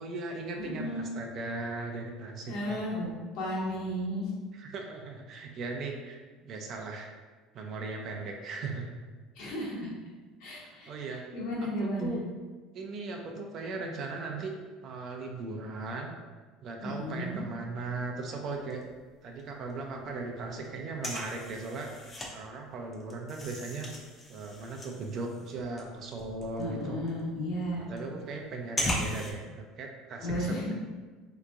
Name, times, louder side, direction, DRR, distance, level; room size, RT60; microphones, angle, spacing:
voice 1, 0.0-2.8 4.5-7.1 7.5-8.8 10.6-11.2 11.6-11.7 12.0-12.2 12.7-14.5 14.8-16.1 16.6-18.8 19.2-21.9 22.3-23.9 24.3-27.0 27.9-30.7, right 3 dB, 50° right, 2 dB, 0.5 m, -38 dB
voice 2, 0.6-1.0 2.5-4.3 9.3-10.0 10.4-10.9 11.3-12.1 16.8-17.4 26.6-27.9 30.2-30.7, equal, 70° left, -6 dB, 1.2 m, -34 dB
sound 1, 18.5-19.4 19.7-19.8 20.0-22.3 22.7-29.3, left 1 dB, 20° left, 0.6 m, -38 dB
3.4 x 2.9 x 2.4 m, 1.4 s
supercardioid pair, 120°, 0 cm